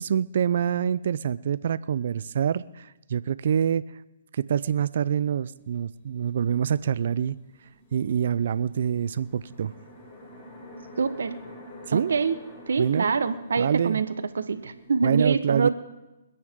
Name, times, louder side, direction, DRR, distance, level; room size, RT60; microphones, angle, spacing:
voice 1, 0.0-3.8 4.3-7.4 7.9-9.7 11.9-12.1 12.8-13.2 13.6-14.0 15.0-15.7, right 8 dB, 60° right, 18 dB, 0.5 m, -26 dB
sound 1, 5.7-5.8 7.0-15.0, equal, 35° left, 6.3 m, -47 dB
voice 2, 11.0-11.4 11.9-12.3 12.7-14.1 14.3-15.7, right 5 dB, 75° right, 11 dB, 1.1 m, -25 dB
27.0 x 9.4 x 3.7 m, 1.1 s
hypercardioid pair, 135°, 0 cm